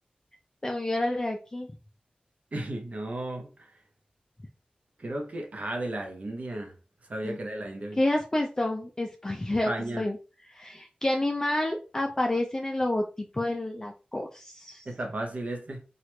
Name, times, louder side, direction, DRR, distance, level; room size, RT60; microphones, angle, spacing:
voice 1, 0.6-1.7 7.2-7.4 8.0-9.7 10.0-10.2 10.5-14.9, left 1 dB, 20° left, 0.4 m, -29 dB
voice 2, 2.5-3.7 5.0-6.7 7.1-8.0 9.5-10.0 14.9-15.8, right 1 dB, 60° right, 0.7 m, -34 dB
3.0 x 2.4 x 3.1 m
wide cardioid pair, 80°, 3 cm